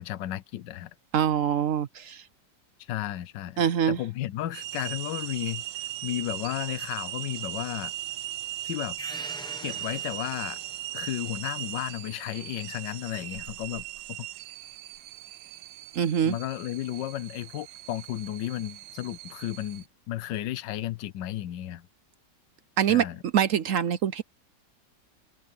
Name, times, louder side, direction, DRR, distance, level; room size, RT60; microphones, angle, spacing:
voice 1, 0.0-0.9 2.8-3.6 3.9-7.9 8.6-9.0 9.6-10.6 10.9-14.2 16.2-21.9 22.9-23.2, left 13 dB, 80° left, 1.4 m, -34 dB
voice 2, 1.1-2.2 3.6-4.0 15.9-16.4 22.8-23.1 23.3-24.2, right 9 dB, 60° right, 0.8 m, -24 dB
sound 1, 4.5-19.8, right 13 dB, 85° right, 1.3 m, -38 dB
sound 2, 9.0-10.9, left 1 dB, 5° left, 1.2 m, -44 dB
open air
omnidirectional pair, 1.9 m